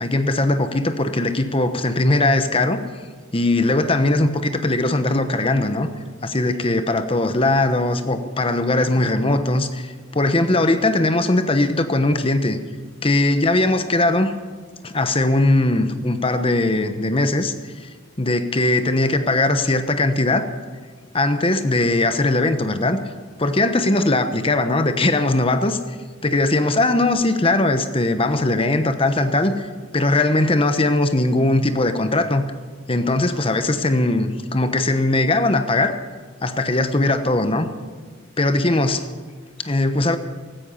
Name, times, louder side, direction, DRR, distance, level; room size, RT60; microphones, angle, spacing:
voice 1, 0.0-2.8 3.3-5.9 6.2-12.6 13.0-14.3 14.8-17.9 18.2-20.5 21.1-23.0 23.4-25.8 26.2-29.7 29.9-32.4 32.9-35.9 36.4-37.7 38.4-39.1 39.6-40.2, left 2 dB, 30° left, 9 dB, 1.0 m, -20 dB
16.5 x 13.5 x 5.6 m, 1.5 s
head